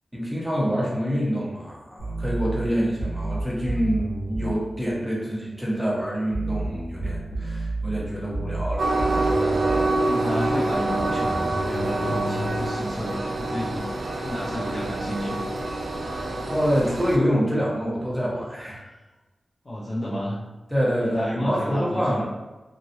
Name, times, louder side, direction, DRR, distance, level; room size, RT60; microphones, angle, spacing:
voice 1, 0.1-8.9 16.5-18.9 20.7-22.2, equal, 5° right, -5 dB, 1.1 m, -26 dB
sound 1, 2.0-4.6 6.3-9.9 11.0-12.6, right 2 dB, 85° left, 1.2 m, -30 dB
Train, 8.8-17.2, right 2 dB, 75° right, 0.4 m, -26 dB
voice 2, 9.9-13.9 14.2-15.4 19.6-20.4 21.0-22.2, equal, 45° left, -8 dB, 0.7 m, -31 dB
3.1 x 2.5 x 2.7 m, 1.1 s
cardioid pair, 55°, 0 cm